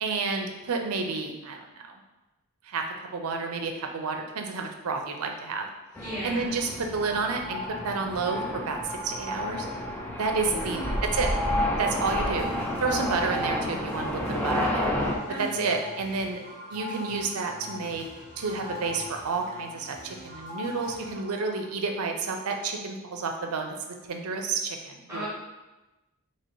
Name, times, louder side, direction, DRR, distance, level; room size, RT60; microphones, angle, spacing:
voice 1, 0.0-1.6 2.6-2.8 3.1-5.7 6.2-9.7 10.1-10.8 11.1-11.3 11.8-12.5 12.8-14.9 15.4-16.4 16.7-18.1 18.4-25.3, right 4 dB, 70° right, 3 dB, 0.5 m, -30 dB
sound 1, 6.0-15.2, left 1 dB, 5° left, 0.4 m, -30 dB
voice 2, 6.0-6.6 10.5-11.0 15.3-15.7 25.1-25.3, equal, 10° right, -10 dB, 1.1 m, -36 dB
sound 2, 7.0-21.8, left 3 dB, 25° left, 0.8 m, -42 dB
sound 3, 12.4-21.1, left 1 dB, 55° left, 1.0 m, -49 dB
3.0 x 2.8 x 4.3 m, 1.1 s
head